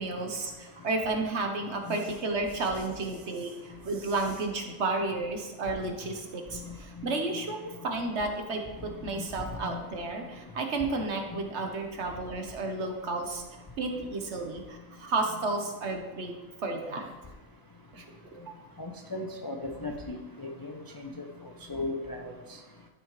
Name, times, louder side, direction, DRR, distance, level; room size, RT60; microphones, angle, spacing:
voice 1, 0.0-7.6 7.8-13.4 13.8-16.3 16.6-17.1 17.9-18.0 18.3-18.5, right 3 dB, 60° right, 3 dB, 1.3 m, -32 dB
voice 2, 18.8-19.6 19.8-20.7 21.7-22.3, left 2 dB, 30° left, 1 dB, 0.4 m, -36 dB
12.0 x 6.2 x 3.2 m, 1.1 s
omnidirectional pair, 1.4 m